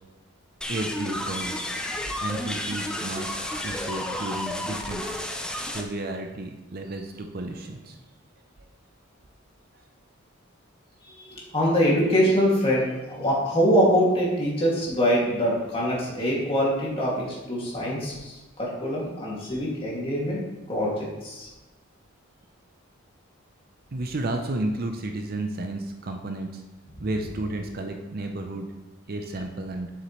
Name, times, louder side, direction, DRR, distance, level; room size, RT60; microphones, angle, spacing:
sound 1, 0.6-5.8, left 1 dB, 5° left, 0.5 m, -31 dB
voice 1, 0.7-1.6 2.2-3.3 3.6-5.3 5.6-8.0 23.9-26.6 27.0-28.7 29.1-29.9, right 2 dB, 45° right, 4 dB, 0.6 m, -32 dB
voice 2, 11.0-20.4 20.7-21.5, equal, 25° left, -5 dB, 2.1 m, -24 dB
7.4 x 6.7 x 3.1 m, 1.1 s
head